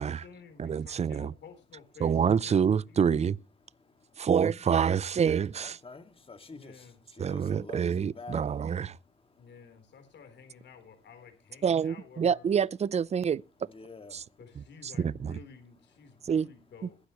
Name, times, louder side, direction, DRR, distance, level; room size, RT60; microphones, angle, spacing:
voice 1, 0.0-3.2 6.5-7.0 9.4-12.5 14.4-17.0, left 6 dB, 65° left, 3.8 m, -52 dB
voice 2, 0.6-1.3 2.0-3.4 4.2-5.8 7.2-9.0 11.6-13.4 14.1-14.2 14.8-15.4 16.2-16.5, right 7 dB, 35° right, 0.5 m, -27 dB
voice 3, 5.6-6.7 7.2-8.6 13.7-14.1, left 4 dB, 30° left, 2.0 m, -47 dB
21.5 x 10.0 x 3.0 m
cardioid pair, 90°, 20 cm